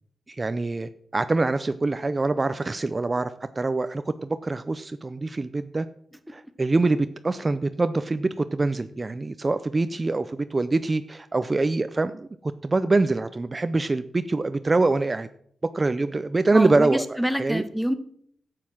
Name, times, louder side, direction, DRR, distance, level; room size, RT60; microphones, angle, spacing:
voice 1, 0.3-3.3 3.6-5.9 6.3-15.3 15.6-17.0 17.4-17.6, right 3 dB, 35° right, 12 dB, 0.5 m, -24 dB
voice 2, 16.5-17.9, equal, ahead, 11 dB, 1.2 m, -26 dB
8.3 x 7.7 x 6.2 m, 0.64 s
cardioid pair, 55°, 0 cm